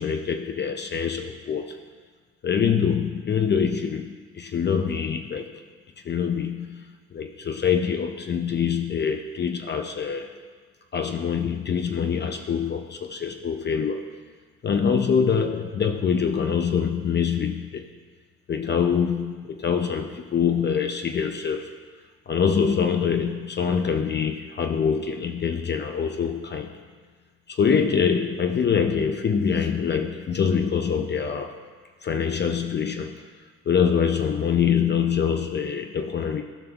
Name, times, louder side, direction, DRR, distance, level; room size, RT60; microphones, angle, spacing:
voice 1, 0.0-1.8 2.4-5.5 6.0-10.3 10.9-14.1 14.6-17.8 18.5-21.7 22.3-26.7 27.5-31.6 32.0-33.3 33.7-36.4, left 7 dB, 35° left, 5 dB, 0.4 m, -24 dB
13.5 x 5.2 x 2.3 m, 1.5 s
cardioid pair, 90°, 30 cm